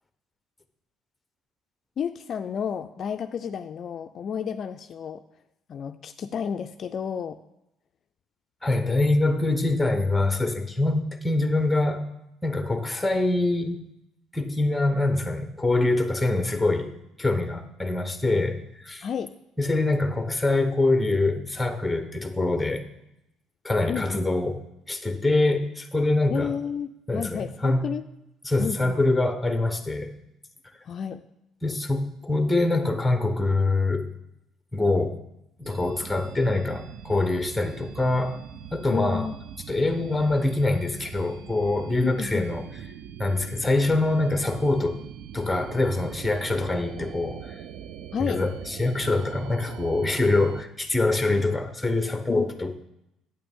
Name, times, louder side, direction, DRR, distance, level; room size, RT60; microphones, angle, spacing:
voice 1, 2.0-5.2 5.7-7.4 19.0-19.3 23.9-24.2 26.3-28.1 28.6-29.0 30.8-31.3 38.9-39.4 42.0-42.5 48.1-48.4 52.3-52.5, left 7 dB, 45° left, 8 dB, 0.3 m, -31 dB
voice 2, 8.6-12.0 12.4-13.8 14.3-16.9 17.2-19.1 19.6-22.8 23.6-24.6 24.9-26.5 27.1-27.8 28.4-30.1 31.6-34.1 34.7-35.2 35.6-38.4 38.7-39.3 39.7-42.6 43.2-45.0 45.3-47.5 48.2-52.8, left 2 dB, 5° left, 8 dB, 0.9 m, -24 dB
sound 1, 35.6-50.6, right 9 dB, 70° right, 0.4 m, -42 dB
8.6 x 8.6 x 3.6 m, 0.83 s
cardioid pair, 115°, 0 cm